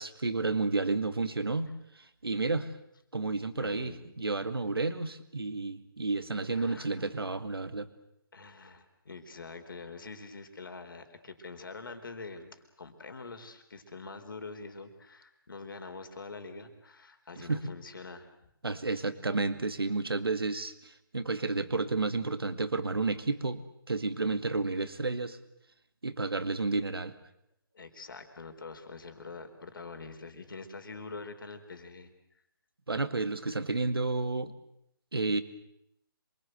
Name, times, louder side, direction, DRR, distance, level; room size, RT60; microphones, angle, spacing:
voice 1, 0.0-2.7 3.1-7.9 17.4-17.6 18.6-23.6 23.9-25.4 26.0-27.1 32.9-34.5 35.1-35.4, right 3 dB, 80° right, 10 dB, 2.2 m, -31 dB
voice 2, 3.6-4.1 6.5-7.1 8.3-18.3 18.9-19.0 27.7-32.1, left 4 dB, 65° left, 7 dB, 4.2 m, -45 dB
27.0 x 23.5 x 7.9 m, 0.75 s
figure-of-eight pair, 145°, 12 cm